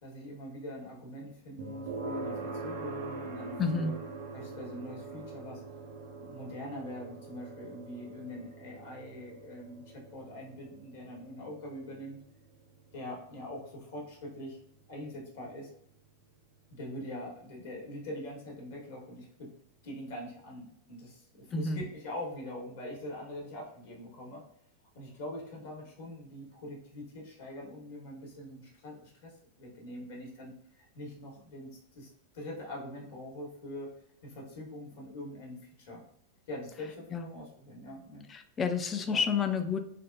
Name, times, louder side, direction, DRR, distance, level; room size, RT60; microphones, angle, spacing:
voice 1, 0.0-3.9 4.3-5.6 6.2-12.2 12.9-14.6 14.9-15.7 16.7-19.5 19.8-24.4 24.9-32.1 32.3-33.9 34.2-36.0 36.5-38.3 39.1-39.2, left 1 dB, 55° left, -1 dB, 1.1 m, -43 dB
sound 1, 1.6-16.5, right 3 dB, 50° right, 0.4 m, -44 dB
voice 2, 3.6-3.9 21.5-21.8 37.1-37.3 38.3-39.8, left 5 dB, 25° left, 7 dB, 0.4 m, -30 dB
3.4 x 2.1 x 2.4 m, 0.72 s
figure-of-eight pair, 90°, 0 cm